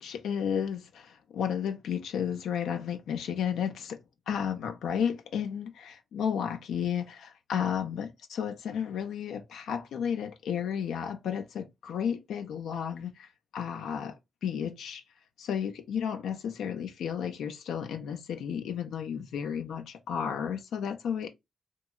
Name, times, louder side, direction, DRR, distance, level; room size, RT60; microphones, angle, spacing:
voice 1, 0.0-4.0 4.3-15.0 15.4-21.3, left 8 dB, 90° left, 0.4 m, -33 dB
2.9 x 2.2 x 2.3 m
cardioid pair, 60°, 0 cm